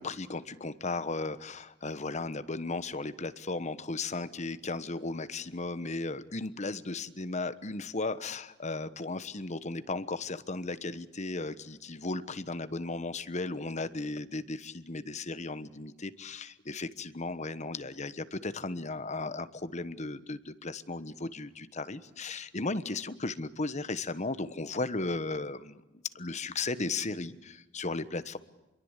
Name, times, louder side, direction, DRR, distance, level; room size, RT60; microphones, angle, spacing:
voice 1, 0.0-25.8 26.1-28.4, left 3 dB, 35° left, 13 dB, 1.2 m, -35 dB
27.0 x 23.0 x 8.3 m, 1.0 s
head